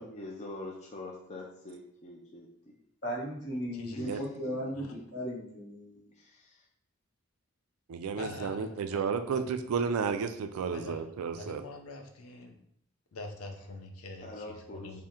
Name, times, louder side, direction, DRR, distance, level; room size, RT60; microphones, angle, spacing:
voice 1, 0.0-2.7 3.9-5.2 6.1-6.7 14.2-15.0, left 2 dB, 30° left, 0 dB, 0.4 m, -45 dB
voice 2, 3.0-6.0, equal, 55° left, -4 dB, 1.1 m, -36 dB
voice 3, 3.7-4.1 4.7-4.9 8.2-9.5 10.7-12.6 13.1-15.0, left 2 dB, 90° left, 4 dB, 0.6 m, -45 dB
voice 4, 7.9-11.6, right 5 dB, 90° right, 9 dB, 0.4 m, -32 dB
3.6 x 2.1 x 4.2 m, 0.73 s
head